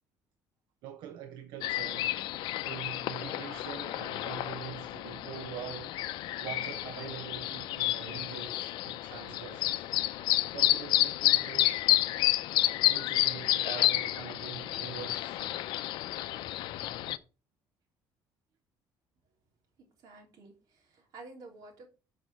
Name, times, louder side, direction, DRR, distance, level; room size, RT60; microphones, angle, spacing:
voice 1, 0.8-2.2 2.6-6.0 6.4-9.9 10.5-11.8 12.9-15.6, right 10 dB, 80° right, 0.9 m, -44 dB
sound 1, 1.6-17.2, left 15 dB, 85° left, 0.5 m, -30 dB
voice 2, 19.8-21.9, right 3 dB, 55° right, 3.3 m, -51 dB
6.4 x 5.5 x 5.6 m
cardioid pair, 160°, 8 cm